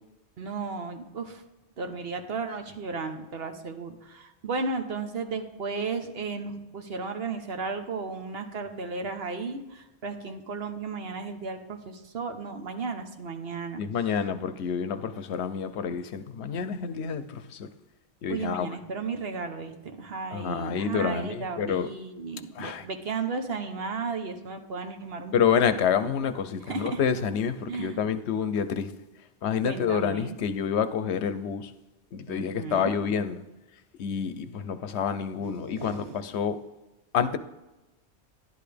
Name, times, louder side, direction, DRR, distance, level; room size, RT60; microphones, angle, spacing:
voice 1, 0.4-1.4 1.8-13.8 18.3-25.3 25.7-25.8 26.6-27.0 27.7-28.0 29.6-30.4 32.3-32.9 35.4-36.3, right 4 dB, 65° right, 1.2 m, -34 dB
voice 2, 13.8-17.7 18.2-18.7 20.3-21.9 22.6-22.8 25.3-28.9 29.4-31.7 32.1-33.4 34.0-36.6 37.1-37.4, left 7 dB, 75° left, 0.9 m, -28 dB
11.5 x 10.5 x 3.4 m
omnidirectional pair, 1.1 m